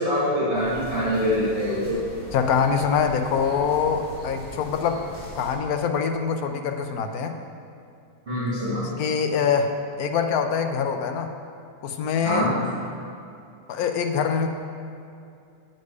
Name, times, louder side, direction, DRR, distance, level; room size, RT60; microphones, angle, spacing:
voice 1, 0.0-2.0 8.3-9.0 12.2-12.6, equal, 40° right, -11 dB, 2.6 m, -24 dB
sound 1, 0.5-5.5, equal, 20° left, 1.5 m, -40 dB
voice 2, 2.3-5.0 5.4-7.4 9.0-11.3 11.8-12.5 13.7-14.5, left 6 dB, 65° left, 5 dB, 1.0 m, -24 dB
8.3 x 6.7 x 4.8 m, 2.5 s
omnidirectional pair, 1.9 m